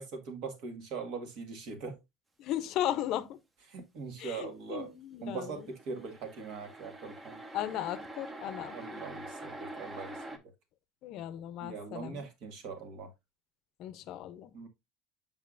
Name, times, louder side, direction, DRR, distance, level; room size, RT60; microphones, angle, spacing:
voice 1, 0.0-2.0 3.7-4.9 5.2-7.4 8.7-10.4 11.6-13.1 14.5-14.7, right 5 dB, 60° right, 1.8 m, -41 dB
voice 2, 2.4-3.4 4.2-5.6 7.5-8.8 11.0-12.2 13.8-14.5, left 12 dB, 55° left, 0.6 m, -36 dB
sound 1, 5.6-10.4, right 1 dB, 15° right, 0.8 m, -45 dB
6.8 x 5.6 x 2.5 m
cardioid pair, 155°, 0 cm